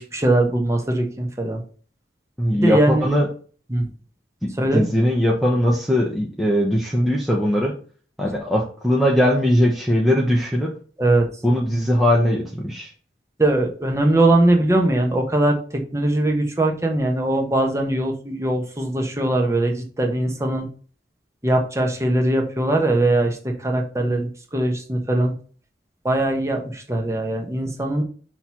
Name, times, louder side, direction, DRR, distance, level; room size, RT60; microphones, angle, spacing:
voice 1, 0.0-1.6 2.5-3.1 3.7-3.9 4.6-4.8 11.0-11.3 13.4-20.7 21.4-25.3 26.0-28.0, right 1 dB, 15° right, 1 dB, 1.2 m, -21 dB
voice 2, 2.4-3.3 4.4-7.7 8.2-10.7 11.4-12.9, equal, ahead, -3 dB, 0.9 m, -20 dB
6.3 x 3.1 x 5.8 m, 0.41 s
head